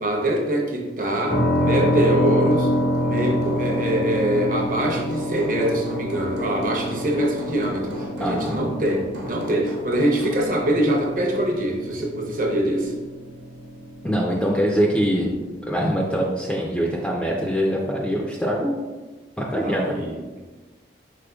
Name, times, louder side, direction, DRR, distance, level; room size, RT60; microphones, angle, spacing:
voice 1, 0.0-2.7 3.0-12.9 19.6-20.4, right 1 dB, 50° right, 1 dB, 0.7 m, -24 dB
Hammer, 0.9-10.5, equal, 80° right, 1.1 m, -40 dB
sound 1, 1.3-15.0, equal, 75° left, 0.8 m, -27 dB
voice 2, 8.2-8.8 14.0-15.3 15.7-18.8 19.4-19.9, equal, 5° left, -2 dB, 0.4 m, -23 dB
5.0 x 4.1 x 2.3 m, 1.2 s
head